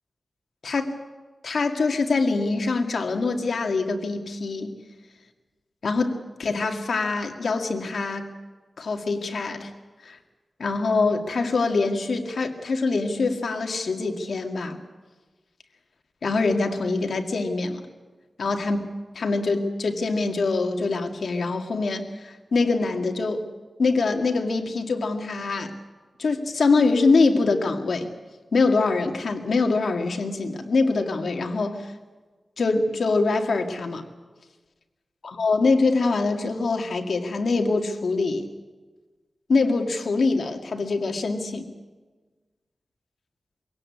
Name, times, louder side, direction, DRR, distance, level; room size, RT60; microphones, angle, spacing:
voice 1, 1.4-4.7 5.8-8.3 8.8-9.7 10.0-10.2 10.6-14.8 16.2-17.8 18.4-18.8 19.2-23.4 23.8-25.7 26.2-28.1 28.5-31.9 32.6-34.1 35.2-38.5 39.5-41.7, left 3 dB, 75° left, 4 dB, 2.1 m, -24 dB
23.5 x 17.5 x 8.6 m, 1.3 s
wide cardioid pair, 120°, 0 cm